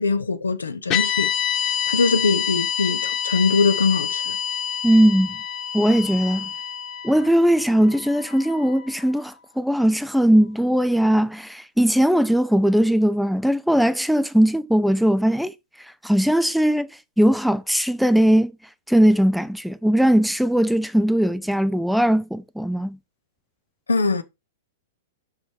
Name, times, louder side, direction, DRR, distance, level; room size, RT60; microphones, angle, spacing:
voice 1, 0.0-4.4 23.9-24.2, left 4 dB, 80° left, 0.8 m, -22 dB
sound 1, 0.9-9.2, left 9 dB, 35° left, 1.3 m, -27 dB
voice 2, 4.8-5.3 5.7-6.5 7.0-15.5 16.0-16.9 17.2-18.5 18.9-23.0, equal, ahead, 0.5 m, -19 dB
5.7 x 5.6 x 4.7 m
figure-of-eight pair, 105°, 0 cm